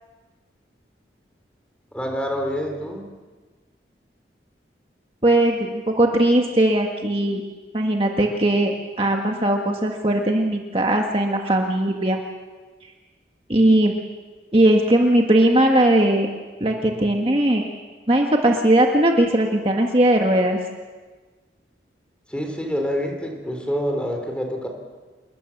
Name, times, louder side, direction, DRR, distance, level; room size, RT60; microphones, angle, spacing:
voice 1, 1.9-3.1 22.3-24.7, equal, 5° left, 3 dB, 3.7 m, -27 dB
voice 2, 5.2-7.4 7.7-12.2 12.8-12.9 13.5-13.9 14.5-16.3 16.6-17.7 18.1-20.6, right 1 dB, 30° right, 1 dB, 1.7 m, -19 dB
27.5 x 21.5 x 7.3 m, 1.4 s
head